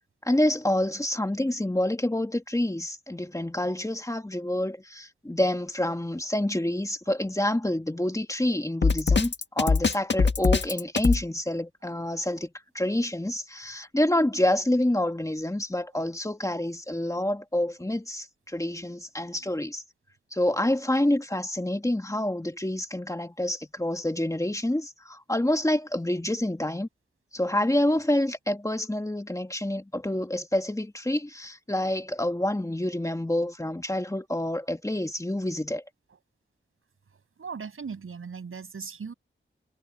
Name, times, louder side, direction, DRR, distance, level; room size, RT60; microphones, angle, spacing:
voice 1, 0.2-12.5 12.7-19.8 20.3-26.9 27.3-35.8, left 1 dB, 15° left, 2.1 m, -27 dB
Drum kit, 8.8-11.2, left 4 dB, 60° left, 1.6 m, -22 dB
voice 2, 37.1-39.1, right 5 dB, 90° right, 7.2 m, -39 dB
wide cardioid pair, 65°, 21 cm